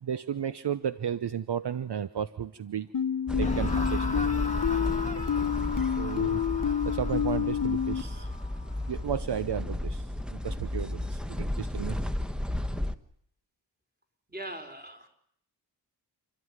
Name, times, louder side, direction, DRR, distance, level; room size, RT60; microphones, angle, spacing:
voice 1, 0.0-2.9 3.4-4.4 5.0-5.2 5.8-6.4 6.8-8.3 8.9-12.0, right 9 dB, 60° right, 13 dB, 0.9 m, -33 dB
sound 1, 2.9-8.0, left 8 dB, 45° left, 1.0 m, -29 dB
sound 2, 3.3-13.0, left 1 dB, ahead, 1.2 m, -33 dB
sound 3, 3.4-10.5, left 3 dB, 15° left, 2.3 m, -40 dB
voice 2, 14.3-15.1, right 1 dB, 20° right, 4 dB, 4.9 m, -40 dB
29.0 x 13.0 x 9.7 m, 0.70 s
wide cardioid pair, 80°, 45 cm